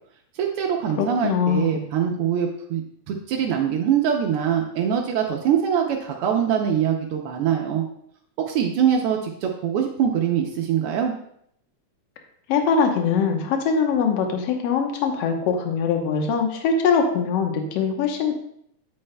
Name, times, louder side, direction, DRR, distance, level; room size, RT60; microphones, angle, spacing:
voice 1, 0.3-2.8 3.1-7.8 8.4-11.1, right 8 dB, 85° right, 1 dB, 1.2 m, -23 dB
voice 2, 1.0-1.9 12.5-18.3, left 5 dB, 65° left, 3 dB, 1.8 m, -22 dB
8.8 x 8.6 x 2.2 m, 0.70 s
omnidirectional pair, 3.3 m